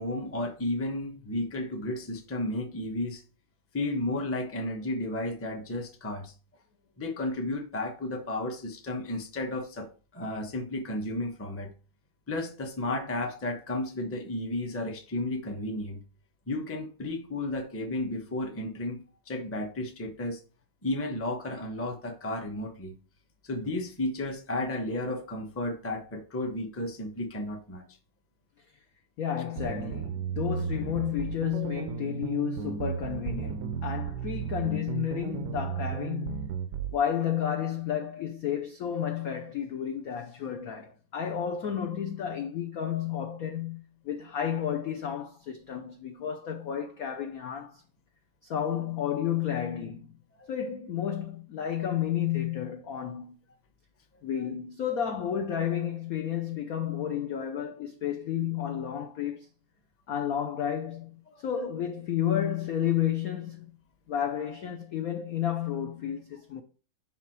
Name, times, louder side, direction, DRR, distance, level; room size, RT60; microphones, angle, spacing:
voice 1, 0.0-3.2 3.7-6.3 7.0-9.9 10.1-11.7 12.3-16.0 16.5-20.4 20.8-22.9 23.4-27.8 50.4-50.5, left 1 dB, 15° left, 0.5 m, -33 dB
voice 2, 29.2-36.6 36.9-47.8 48.4-50.2 50.5-53.4 54.2-59.5 60.1-63.7 64.1-66.6, left 9 dB, 75° left, 0.8 m, -31 dB
sound 1, 29.6-37.0, right 8 dB, 80° right, 0.9 m, -34 dB
5.9 x 5.6 x 4.6 m
omnidirectional pair, 2.4 m